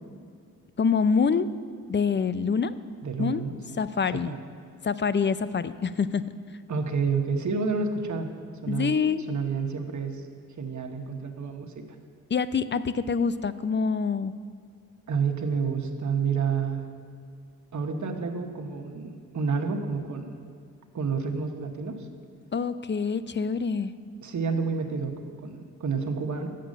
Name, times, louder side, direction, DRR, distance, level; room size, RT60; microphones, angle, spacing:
voice 1, 0.8-1.5 1.9-2.7 3.2-3.4 3.8-4.4 4.8-6.2 8.7-9.2 12.3-14.3 22.5-23.9, left 5 dB, 30° left, 14 dB, 0.5 m, -25 dB
voice 2, 3.0-3.8 4.1-4.4 6.7-8.3 8.6-9.0 9.3-10.2 10.5-11.8 15.1-16.9 17.7-20.3 20.9-22.1 24.2-26.5, right 5 dB, 55° right, 4 dB, 1.2 m, -29 dB
9.1 x 7.6 x 6.5 m, 2.3 s
cardioid pair, 55°, 36 cm